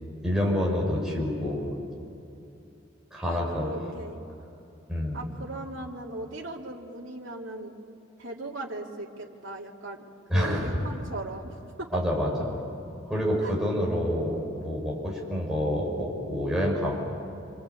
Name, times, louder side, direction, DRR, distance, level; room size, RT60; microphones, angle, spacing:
voice 1, 0.2-1.6 3.1-3.9 4.9-5.3 10.3-10.8 11.9-12.6 13.0-16.9, equal, ahead, -3 dB, 6.4 m, -27 dB
voice 2, 3.2-4.2 5.1-7.7 8.2-11.9 13.4-13.5, right 2 dB, 75° right, -2 dB, 2.8 m, -38 dB
27.5 x 25.5 x 8.5 m, 2.7 s
head